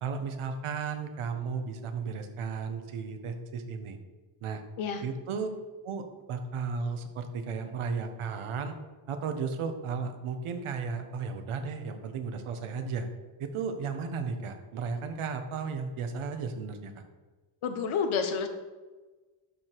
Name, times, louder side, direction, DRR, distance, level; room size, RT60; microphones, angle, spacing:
voice 1, 0.0-4.0 4.4-4.6 5.0-5.5 5.8-8.7 9.1-13.1 13.4-17.0, right 5 dB, 75° right, 6 dB, 1.3 m, -34 dB
voice 2, 17.6-18.5, left 6 dB, 75° left, 7 dB, 1.3 m, -29 dB
12.0 x 5.1 x 4.7 m, 1.3 s
cardioid pair, 125°, 49 cm